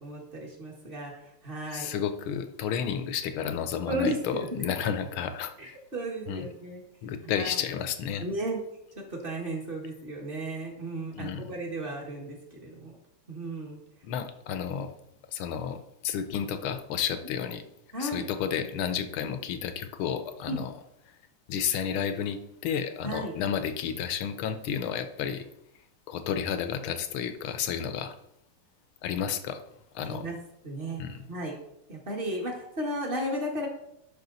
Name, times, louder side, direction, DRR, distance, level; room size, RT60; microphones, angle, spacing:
voice 1, 0.0-1.1 1.4-1.9 3.9-4.6 5.6-6.8 7.4-7.5 8.2-8.6 9.2-12.9 13.3-13.8 17.9-18.2 20.5-20.6 23.0-23.3 30.0-30.3 30.6-31.0 31.3-31.5 31.9-33.7, right 1 dB, 25° right, 0 dB, 1.7 m, -34 dB
voice 2, 1.7-5.8 6.3-6.5 7.0-8.3 11.1-11.5 14.0-14.9 15.3-17.6 18.0-20.7 21.5-25.4 26.1-28.1 29.0-29.6 29.9-30.3 31.0-31.2, left 8 dB, 80° left, 9 dB, 1.6 m, -31 dB
10.5 x 5.5 x 4.0 m, 0.82 s
omnidirectional pair, 2.4 m